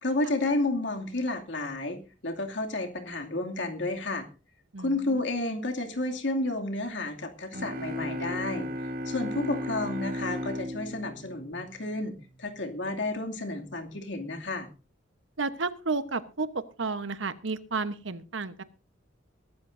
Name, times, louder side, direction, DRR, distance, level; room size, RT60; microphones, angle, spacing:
voice 1, 0.0-4.3 4.8-8.7 9.1-14.7, left 2 dB, 70° left, 4 dB, 2.6 m, -31 dB
voice 2, 4.7-5.2 15.4-18.6, right 4 dB, 85° right, 12 dB, 1.1 m, -32 dB
sound 1, 7.5-12.2, left 1 dB, 50° right, 1.3 m, -35 dB
22.0 x 13.0 x 2.7 m, 0.32 s
head